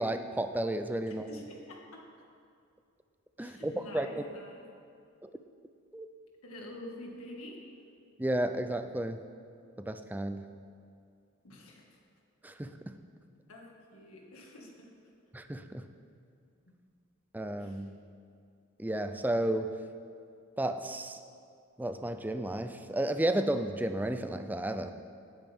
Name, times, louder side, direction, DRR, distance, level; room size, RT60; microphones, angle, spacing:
voice 1, 0.0-1.4 3.4-4.3 5.2-5.3 5.9-6.1 8.2-9.2 9.8-10.5 12.4-13.0 15.3-15.8 17.3-17.9 18.8-19.7 20.6-21.2 21.8-24.9, right 1 dB, 10° right, 8 dB, 0.4 m, -32 dB
voice 2, 1.3-2.0 3.4-4.7 6.4-7.6 11.4-11.8 13.5-14.9 17.6-17.8, left 1 dB, 85° left, -1 dB, 2.0 m, -47 dB
18.0 x 8.7 x 3.6 m, 2.3 s
head